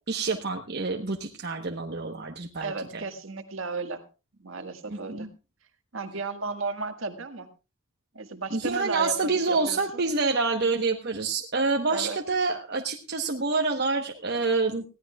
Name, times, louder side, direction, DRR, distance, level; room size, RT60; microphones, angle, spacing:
voice 1, 0.1-2.7 4.9-5.3 8.5-14.8, right 3 dB, 50° right, 2 dB, 1.2 m, -27 dB
voice 2, 2.6-4.0 4.4-5.3 5.9-7.5 8.1-10.0 11.9-12.2, right 3 dB, 70° right, 7 dB, 1.8 m, -34 dB
20.5 x 15.5 x 2.4 m, 0.32 s
head